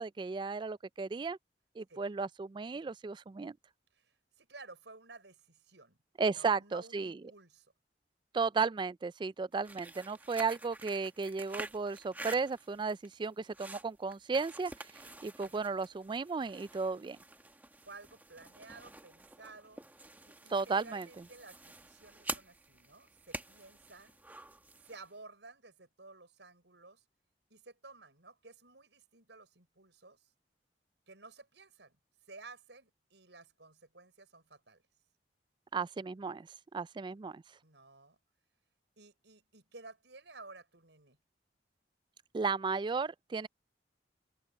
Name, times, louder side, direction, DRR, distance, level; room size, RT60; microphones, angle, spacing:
voice 1, 0.0-1.4 1.8-3.6 6.2-7.2 8.3-17.2 20.5-21.1 35.7-37.4 42.3-43.5, right 4 dB, 25° right, 0.3 m, -34 dB
voice 2, 3.9-6.0 6.3-7.7 15.7-15.8 17.8-19.8 20.3-24.2 24.8-27.0 27.5-30.3 31.1-32.0 32.3-34.8 37.6-38.2 39.0-41.2, right 3 dB, 85° right, 6.3 m, -54 dB
sound 1, 9.5-25.1, right 2 dB, 10° right, 1.1 m, -48 dB
open air
head